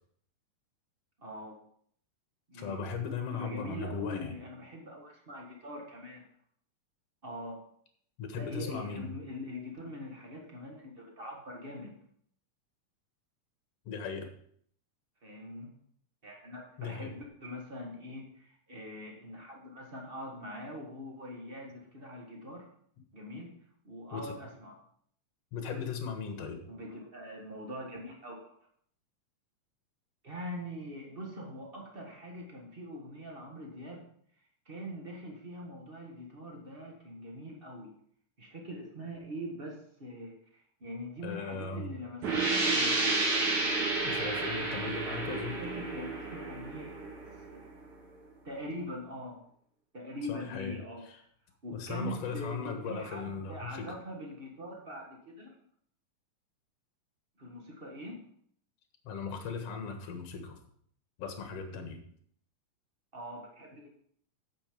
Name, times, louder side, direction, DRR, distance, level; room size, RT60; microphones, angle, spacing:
voice 1, 1.2-1.6 2.5-2.8 3.3-6.2 7.2-7.6 8.4-12.0 15.2-15.8 16.2-22.7 23.1-23.5 23.8-24.8 26.7-28.5 30.2-34.1 34.6-37.9 38.4-43.3 45.6-47.7 48.4-49.4 49.9-51.1 51.6-55.5 57.4-58.3 63.1-63.9, equal, 40° right, 0 dB, 0.7 m, -43 dB
voice 2, 2.5-4.3 8.2-9.1 13.9-14.3 16.8-17.1 24.1-24.3 25.5-26.6 41.2-41.9 44.1-45.6 50.3-50.8 51.7-54.0 59.0-60.6 61.2-62.0, left 5 dB, 55° left, 5 dB, 2.2 m, -37 dB
sound 1, 42.2-47.7, right 3 dB, 60° right, 3.4 m, -31 dB
8.9 x 6.9 x 5.1 m, 0.63 s
omnidirectional pair, 3.9 m